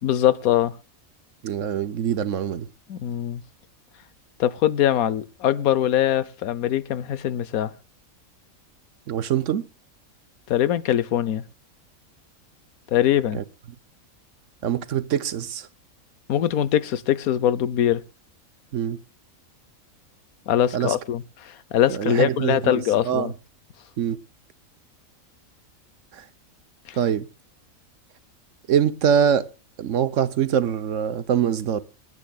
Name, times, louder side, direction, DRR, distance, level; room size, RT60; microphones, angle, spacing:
voice 1, 0.0-0.8 2.9-3.4 4.4-7.7 10.5-11.4 12.9-13.4 16.3-18.0 20.5-23.3 26.9-27.0, left 11 dB, 90° left, 1.3 m, -22 dB
voice 2, 1.4-2.7 9.1-9.6 13.3-13.4 14.6-15.7 18.7-19.0 20.7-21.0 21.9-23.3 24.0-24.2 27.0-27.3 28.7-29.5 29.8-31.8, right 8 dB, 65° right, 1.1 m, -23 dB
27.0 x 9.8 x 2.3 m
omnidirectional pair, 1.5 m